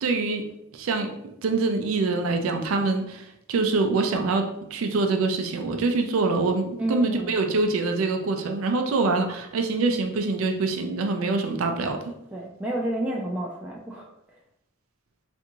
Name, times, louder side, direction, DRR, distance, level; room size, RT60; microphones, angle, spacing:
voice 1, 0.0-0.5 0.7-1.1 1.4-12.0, right 3 dB, 85° right, 5 dB, 0.4 m, -25 dB
voice 2, 6.8-7.4 12.3-14.4, right 1 dB, 5° right, -3 dB, 0.3 m, -31 dB
3.4 x 2.5 x 2.9 m, 0.82 s
head